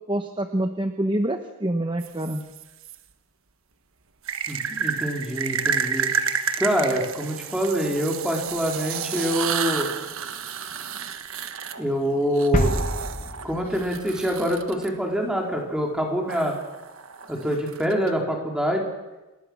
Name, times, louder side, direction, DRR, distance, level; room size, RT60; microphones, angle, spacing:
voice 1, 0.1-2.4, right 1 dB, 20° right, 6 dB, 1.1 m, -26 dB
sound 1, 2.0-2.9 4.2-14.9 16.3-18.1, right 6 dB, 60° right, 1.4 m, -31 dB
voice 2, 4.5-6.1 6.6-9.9 11.8-12.7 13.4-16.5 17.3-18.8, equal, 5° right, 0 dB, 4.0 m, -25 dB
sound 2, 12.5-14.4 14.7-14.8, left 1 dB, 35° left, 1.4 m, -27 dB
27.5 x 20.5 x 6.4 m, 1.1 s
head